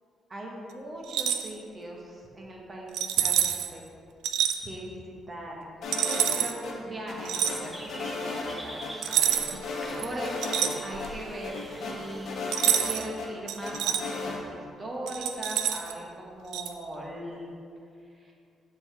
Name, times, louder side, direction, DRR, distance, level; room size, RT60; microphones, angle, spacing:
voice 1, 0.3-3.8 4.6-17.5 18.1-18.3, right 1 dB, 35° right, -2 dB, 1.1 m, -40 dB
sound 1, 1.0-1.5 2.9-3.7 4.2-4.6 5.9-6.5 7.2-7.6 9.0-9.6 10.0-11.2 12.5-13.1 13.5-14.0 15.1-15.9 16.5-16.7, right 10 dB, 90° right, 0.4 m, -27 dB
sound 2, 5.8-6.7 7.1-8.6 8.8-8.9 9.3-10.7 11.0-11.1 11.4-13.3 13.6-14.4, left 3 dB, 70° left, 1.0 m, -35 dB
sound 3, 7.4-13.1, equal, 5° right, 1.0 m, -45 dB
7.6 x 4.7 x 3.4 m, 2.4 s
cardioid pair, 90°, 0 cm